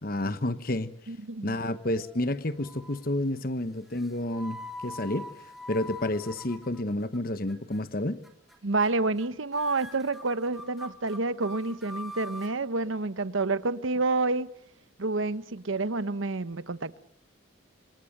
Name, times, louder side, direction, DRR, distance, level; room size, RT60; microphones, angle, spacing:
voice 1, 0.0-0.9 1.4-5.3 5.7-8.2, left 1 dB, 45° left, 1.2 m, -30 dB
voice 2, 1.1-1.6 8.6-14.5 15.0-17.0, right 3 dB, 80° right, 1.0 m, -29 dB
sound 1, 1.7-2.2 2.6-3.1 3.9-7.2 7.5-7.8 8.2-8.6 8.8-8.9 9.2-9.3 9.5-12.5, left 1 dB, ahead, 2.3 m, -44 dB
27.5 x 26.5 x 6.6 m
head